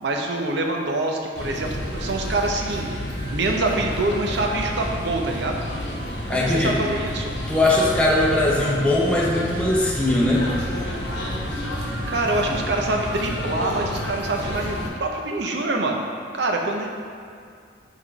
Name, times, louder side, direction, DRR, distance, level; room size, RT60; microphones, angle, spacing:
voice 1, 0.0-2.9 3.3-5.6 6.3-7.3 12.1-16.0 16.3-16.9, right 2 dB, 65° right, 1 dB, 0.7 m, -25 dB
sound 1, 1.4-14.9, equal, 70° left, 1.0 m, -30 dB
voice 2, 6.3-6.8 7.5-10.5, left 1 dB, 5° left, -5 dB, 0.7 m, -20 dB
5.4 x 3.7 x 4.7 m, 2.3 s
head